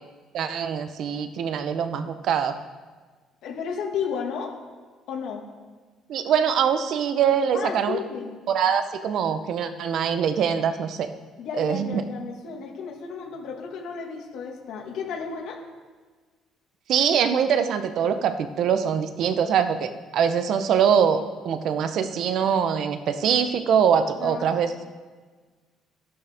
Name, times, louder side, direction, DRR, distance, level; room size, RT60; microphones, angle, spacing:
voice 1, 0.3-2.6 6.1-8.0 8.5-11.1 11.5-12.0 16.9-24.7, right 7 dB, 60° right, 9 dB, 0.8 m, -23 dB
voice 2, 3.4-4.6 5.1-5.4 7.5-8.4 11.4-15.6 24.2-24.5, left 6 dB, 70° left, 1 dB, 1.9 m, -33 dB
13.0 x 11.5 x 3.6 m, 1.4 s
cardioid pair, 115°, 0 cm